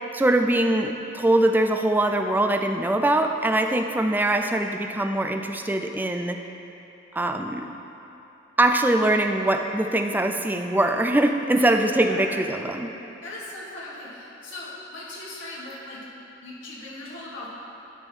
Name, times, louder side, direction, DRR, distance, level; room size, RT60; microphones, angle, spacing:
voice 1, 0.1-6.4 7.1-7.7 8.6-12.9, right 1 dB, 10° right, 5 dB, 0.3 m, -22 dB
voice 2, 11.6-12.4 13.2-16.0 16.4-17.5, left 2 dB, 75° left, -7 dB, 2.0 m, -39 dB
10.5 x 3.6 x 6.0 m, 3.0 s
head